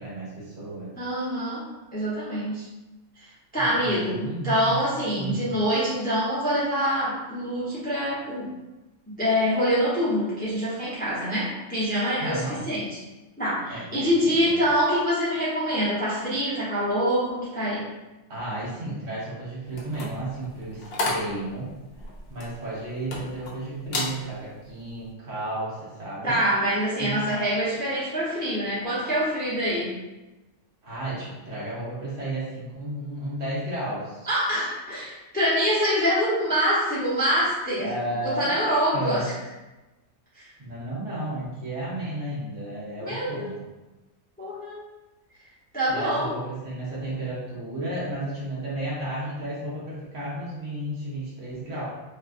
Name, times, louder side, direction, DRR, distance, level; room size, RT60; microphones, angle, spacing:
voice 1, 0.0-0.9 3.5-4.8 5.2-5.5 12.2-12.6 13.7-14.6 18.3-21.7 22.3-26.4 27.0-27.2 30.8-34.3 37.8-38.6 38.9-39.2 40.6-43.6 45.9-51.8, right 1 dB, 65° right, -7 dB, 1.2 m, -33 dB
voice 2, 1.0-1.6 1.9-2.7 3.2-8.5 9.1-12.9 13.4-17.9 26.2-29.9 34.3-37.9 38.2-39.3 40.3-40.5 43.0-43.5 44.4-44.8 45.7-46.3, equal, 10° left, -11 dB, 0.6 m, -25 dB
sound 1, 19.7-23.5 23.8-24.2 24.6-24.9, left 2 dB, 65° left, 0.6 m, -32 dB
2.9 x 2.3 x 2.4 m, 1.1 s
omnidirectional pair, 1.4 m